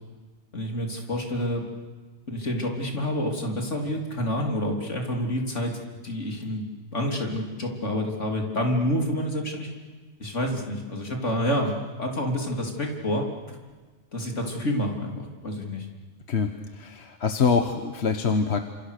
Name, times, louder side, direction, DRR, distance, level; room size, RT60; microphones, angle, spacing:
voice 1, 0.5-1.6 2.3-6.6 6.9-9.7 10.2-11.7 12.0-13.3 14.1-15.9, equal, 80° left, 2 dB, 3.8 m, -28 dB
voice 2, 16.3-18.6, left 5 dB, 65° left, 7 dB, 1.4 m, -25 dB
29.0 x 27.0 x 6.7 m, 1.4 s
omnidirectional pair, 1.2 m